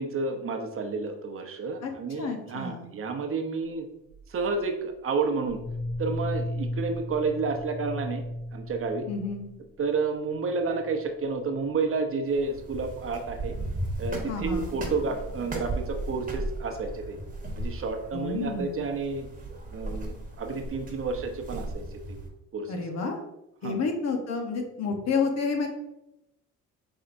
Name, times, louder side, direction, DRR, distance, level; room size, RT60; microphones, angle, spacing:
voice 1, 0.0-3.9 4.3-5.6 6.0-8.2 8.5-9.1 9.8-13.6 14.0-17.2 17.6-19.3 19.7-22.2 22.5-22.8 23.6-23.8, right 4 dB, 45° right, 5 dB, 0.7 m, -30 dB
voice 2, 2.2-2.9 9.1-9.5 14.3-14.7 18.1-18.8 22.7-23.2 23.6-25.7, left 4 dB, 60° left, 3 dB, 0.9 m, -30 dB
sound 1, 4.1-4.5 5.4-9.9 10.3-10.4 10.7-11.0 11.3-11.6 12.2-12.3 13.3-16.5, left 1 dB, 80° left, 1.5 m, -37 dB
sound 2, 12.3-22.3, right 2 dB, 25° right, 1.1 m, -36 dB
5.4 x 3.5 x 2.6 m, 0.88 s
cardioid pair, 90°, 30 cm